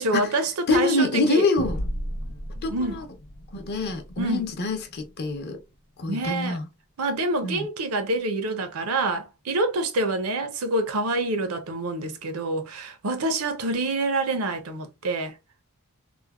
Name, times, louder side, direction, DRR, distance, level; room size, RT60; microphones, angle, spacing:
voice 1, 0.0-1.5 2.7-3.0 4.2-4.5 6.1-6.6 7.0-15.3, right 2 dB, 75° right, 0.6 m, -27 dB
voice 2, 0.7-1.8 2.5-3.0 3.5-5.6 6.0-6.7 7.4-7.7, left 2 dB, 50° left, 0.6 m, -25 dB
sound 1, 1.6-6.4, equal, 90° left, 0.9 m, -36 dB
3.2 x 2.0 x 2.2 m
head